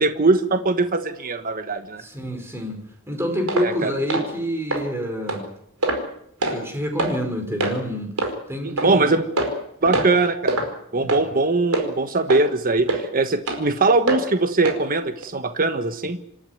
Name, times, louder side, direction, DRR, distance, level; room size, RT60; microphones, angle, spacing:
voice 1, 0.0-2.0 3.6-3.9 8.6-9.2 9.8-10.6 10.9-16.2, right 3 dB, 40° right, 8 dB, 1.3 m, -21 dB
voice 2, 2.0-2.8 3.1-5.5 6.5-9.2 10.9-11.2, equal, 10° right, 4 dB, 4.9 m, -28 dB
sound 1, 3.5-3.7 4.1-4.3 4.7-4.8 5.3-5.4 5.8-6.1 6.4-6.6 7.0-7.1 7.6-7.8 8.2-8.3 8.8-8.9 9.4-9.6 9.9-10.2 10.5-10.7 11.1-11.2 11.7-11.9 12.3-12.4 12.9-13.0 13.5-13.6 14.1-14.2 14.6-14.8 15.2-15.3, right 2 dB, 75° right, 4.8 m, -23 dB
27.0 x 13.0 x 9.3 m, 0.75 s
head